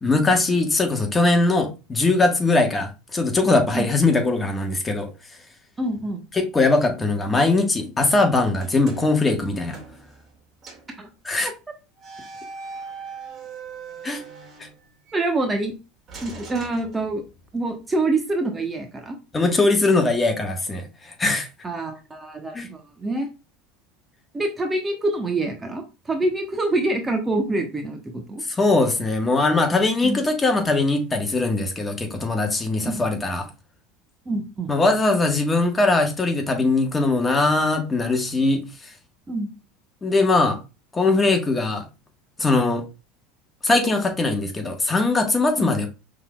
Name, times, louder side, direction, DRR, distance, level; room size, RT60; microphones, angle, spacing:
voice 1, 0.0-5.1 6.3-9.8 11.2-11.5 14.0-14.2 14.6-14.7 19.3-21.5 22.5-22.7 28.5-33.4 34.7-38.6 40.0-40.6 40.9-41.8 42.4-42.8 43.6-45.9, left 3 dB, 20° left, 1.4 m, -21 dB
voice 2, 5.8-6.2 11.0-11.1 11.4-11.5 15.1-15.7 16.2-17.2 17.5-19.2 21.6-23.3 24.3-28.4 30.0-30.3 32.8-33.0 34.3-34.7 39.3-39.5 45.5-45.7, right 2 dB, 20° right, 0.9 m, -26 dB
sound 1, 8.5-10.4 10.6-11.0 12.0-15.2 16.1-17.5, right 4 dB, 35° right, 1.9 m, -41 dB
5.6 x 3.8 x 2.3 m
hypercardioid pair, 85°, 0 cm